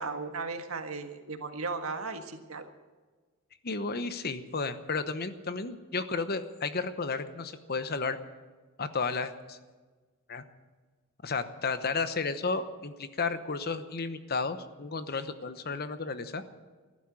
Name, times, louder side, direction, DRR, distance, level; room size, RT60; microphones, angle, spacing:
voice 1, 0.0-2.7, right 4 dB, 90° right, 6 dB, 1.6 m, -36 dB
voice 2, 3.6-8.2 8.8-9.6 10.3-10.4 11.2-16.4, left 4 dB, 45° left, 11 dB, 1.0 m, -33 dB
14.5 x 11.5 x 8.7 m, 1.4 s
head